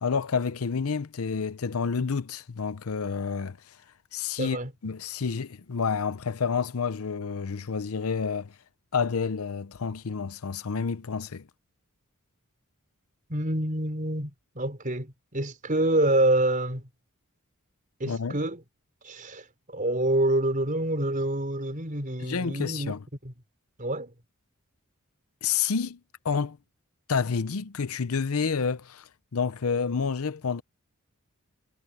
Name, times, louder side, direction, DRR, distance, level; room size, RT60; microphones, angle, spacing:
voice 1, 0.0-3.6 4.1-4.6 4.8-8.5 8.9-11.4 18.0-18.4 22.2-23.0 25.4-26.0 26.2-26.6 27.1-30.6, left 5 dB, 75° left, 0.7 m, -29 dB
voice 2, 4.4-4.7 13.3-16.9 18.0-18.6 19.0-22.9 23.2-23.3 23.8-24.1, right 1 dB, 40° right, 4.7 m, -27 dB
head